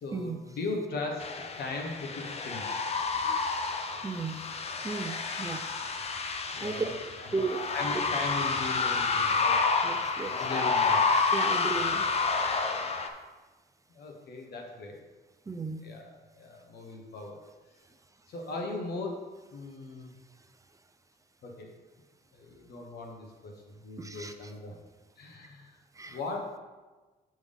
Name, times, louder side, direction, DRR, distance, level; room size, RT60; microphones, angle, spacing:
voice 1, 0.0-2.9 6.5-6.9 7.2-7.3 7.7-9.6 10.3-11.0 13.9-15.0 15.8-17.4 18.3-19.2 19.5-20.1 21.4-21.7 22.3-24.7 25.2-25.8 26.1-26.6, left 3 dB, 75° left, 1 dB, 1.4 m, -38 dB
sound 1, 1.2-13.1, left 4 dB, 40° left, 0.7 m, -29 dB
voice 2, 4.0-4.4 4.8-5.6 6.6-6.8 7.3-7.6 9.8-10.7 11.3-12.1 15.5-15.8 24.0-24.3 26.0-26.2, right 4 dB, 20° right, 7 dB, 0.4 m, -35 dB
7.0 x 6.2 x 3.5 m, 1.3 s
cardioid pair, 115°, 17 cm